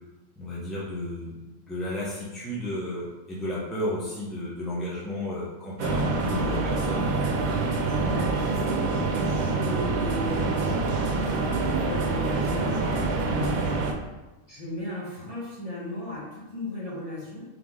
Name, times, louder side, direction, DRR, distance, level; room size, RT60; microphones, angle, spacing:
voice 1, 0.4-1.3 1.7-7.1, left 1 dB, ahead, -8 dB, 0.6 m, -33 dB
sound 1, 5.8-13.9, right 3 dB, 90° right, 1.1 m, -26 dB
voice 2, 8.0-13.7 14.5-17.4, left 1 dB, 25° left, -7 dB, 1.3 m, -36 dB
4.0 x 3.2 x 3.7 m, 1.1 s
omnidirectional pair, 1.4 m